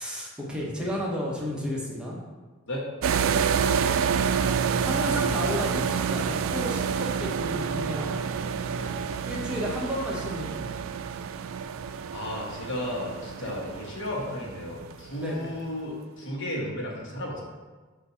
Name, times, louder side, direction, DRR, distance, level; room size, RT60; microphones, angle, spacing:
voice 1, 0.0-2.2 4.8-8.2 9.3-10.8 13.4-13.5 15.2-15.5, equal, 5° right, -4 dB, 0.8 m, -32 dB
sound 1, 3.0-15.1, right 6 dB, 75° right, 0.3 m, -28 dB
voice 2, 12.1-17.4, left 1 dB, 65° left, -2 dB, 1.2 m, -34 dB
6.6 x 2.7 x 5.5 m, 1.3 s
head